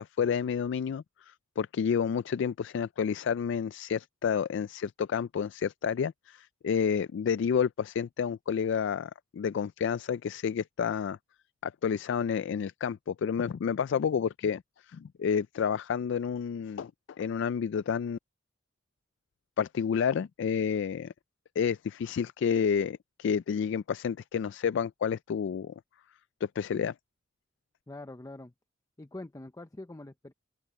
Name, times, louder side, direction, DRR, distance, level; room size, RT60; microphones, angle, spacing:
voice 1, 0.0-11.2 11.6-14.6 14.9-16.9 17.2-18.2 19.6-21.1 21.6-25.7 26.6-26.9, left 7 dB, 65° left, 0.3 m, -30 dB
voice 2, 27.9-28.5 29.0-30.3, left 2 dB, 15° left, 0.6 m, -44 dB
open air
head